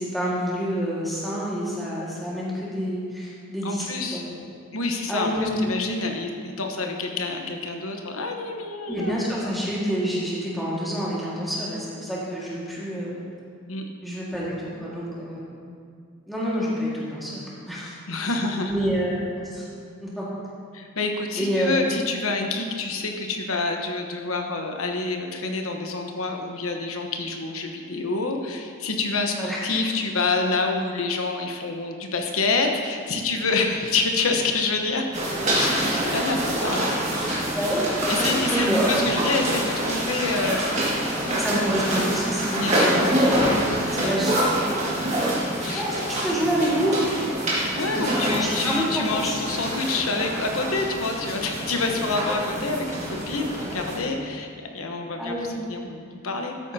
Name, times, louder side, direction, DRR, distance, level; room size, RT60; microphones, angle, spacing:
voice 1, 0.0-3.8 4.1-4.2 5.1-5.6 8.9-13.2 14.0-15.5 16.3-17.9 18.2-18.3 18.7-19.7 20.0-20.3 21.4-21.9 29.4-29.6 37.5-38.9 41.2-43.3 43.9-44.3 45.7-47.0 48.3-49.3 49.6-49.7 52.2-52.3 55.2-55.5, equal, ahead, -8 dB, 1.9 m, -27 dB
voice 2, 3.6-4.2 4.7-9.2 13.7-13.8 18.1-18.7 20.7-35.0 35.5-37.5 38.1-40.6 42.6-43.1 44.0-44.4 45.6-45.8 47.7-55.4 55.7-56.7, left 3 dB, 75° left, 3 dB, 1.1 m, -27 dB
sound 1, 35.1-54.0, right 1 dB, 30° right, 2.0 m, -26 dB
13.0 x 8.5 x 2.8 m, 2.2 s
head